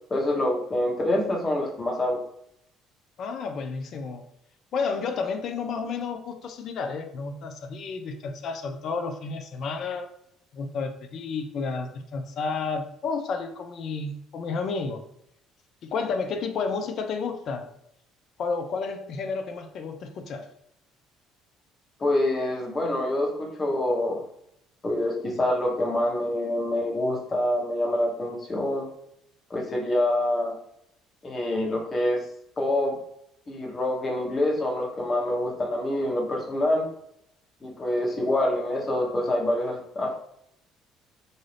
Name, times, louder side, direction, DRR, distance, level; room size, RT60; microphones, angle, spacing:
voice 1, 0.1-2.2 22.0-24.2 24.8-28.8 29.5-30.5 31.2-32.2 32.6-33.0 33.5-36.9 37.6-40.2, left 1 dB, 35° left, -1 dB, 1.1 m, -26 dB
voice 2, 3.2-4.2 4.7-10.1 10.5-15.0 15.8-17.7 18.4-20.5, left 4 dB, 55° left, 7 dB, 0.4 m, -31 dB
2.6 x 2.4 x 3.2 m, 0.73 s
hypercardioid pair, 60°, 0 cm